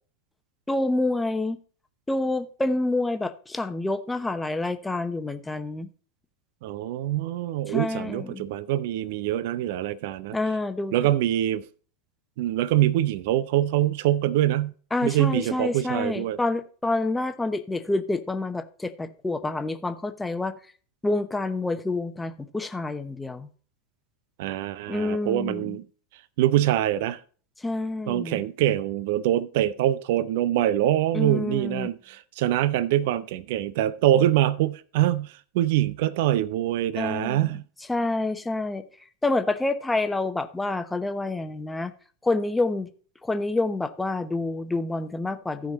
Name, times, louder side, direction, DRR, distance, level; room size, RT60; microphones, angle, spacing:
voice 1, 0.7-1.6 2.1-5.9 7.7-8.4 10.3-10.9 14.9-20.6 21.0-23.5 24.9-25.8 27.6-28.4 31.1-31.9 36.9-37.5 37.9-38.8 39.2-41.9 42.2-42.9 43.2-45.7, left 2 dB, 10° left, 0.9 m, -28 dB
voice 2, 6.6-10.4 10.9-11.7 12.4-14.7 15.0-16.4 24.4-25.8 26.4-27.2 28.1-37.6, right 13 dB, 60° right, 0.5 m, -24 dB
14.5 x 5.2 x 4.0 m
figure-of-eight pair, 90°, 0 cm